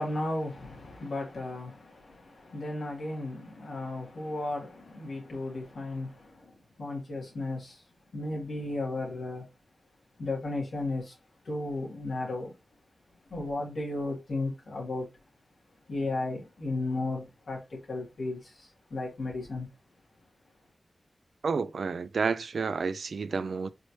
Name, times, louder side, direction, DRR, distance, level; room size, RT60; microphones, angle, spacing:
voice 1, 0.0-7.8 8.1-9.5 10.2-11.2 11.4-12.5 13.3-15.1 15.9-19.7, left 2 dB, 85° left, 2.0 m, -34 dB
voice 2, 21.4-23.7, right 5 dB, 85° right, 0.3 m, -30 dB
4.8 x 3.0 x 2.7 m
wide cardioid pair, 110°, 0 cm